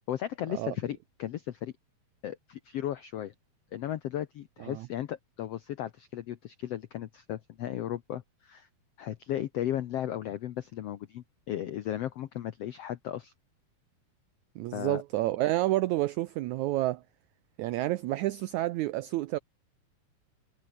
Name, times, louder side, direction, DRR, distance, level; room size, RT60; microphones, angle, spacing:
voice 1, 0.1-1.7 2.2-3.3 3.7-8.7 9.0-13.3 14.7-15.0, left 11 dB, 80° left, 1.4 m, -35 dB
voice 2, 14.6-17.0 17.6-19.4, right 16 dB, 90° right, 1.6 m, -29 dB
omnidirectional pair, 4.1 m